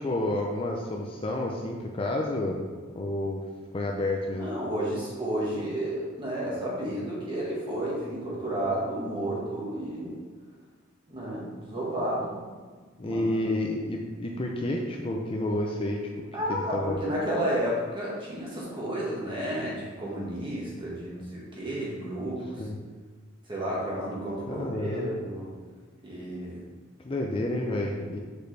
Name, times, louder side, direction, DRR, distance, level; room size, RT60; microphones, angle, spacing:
voice 1, 0.0-2.6 2.9-3.4 3.7-4.5 13.0-16.0 16.5-17.0 22.6-22.8 24.5-25.2 27.0-28.2, left 1 dB, 25° left, 0 dB, 0.5 m, -30 dB
voice 2, 4.3-10.2 11.1-12.4 13.0-13.6 16.3-22.7 23.5-25.5 26.0-26.6, right 1 dB, 25° right, -5 dB, 1.6 m, -32 dB
6.3 x 5.2 x 3.3 m, 1.4 s
head